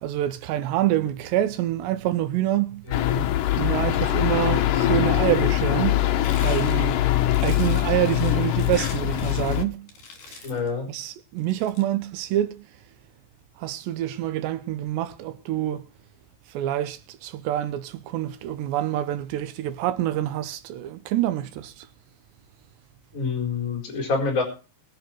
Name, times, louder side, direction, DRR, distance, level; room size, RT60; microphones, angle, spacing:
voice 1, 0.0-2.9 3.5-6.1 6.4-6.9 7.4-9.9 10.3-10.4 10.9-12.6 13.6-15.8 16.5-21.9, right 13 dB, 75° right, 3.0 m, -26 dB
sound 1, 2.9-9.6, left 13 dB, 85° left, 1.8 m, -22 dB
voice 2, 2.9-3.3 10.4-10.9 23.1-24.4, left 4 dB, 20° left, 4.4 m, -26 dB
sound 2, 6.2-9.6 9.9-10.7 11.4-11.8, left 5 dB, 50° left, 4.5 m, -41 dB
22.0 x 7.9 x 4.5 m
omnidirectional pair, 5.2 m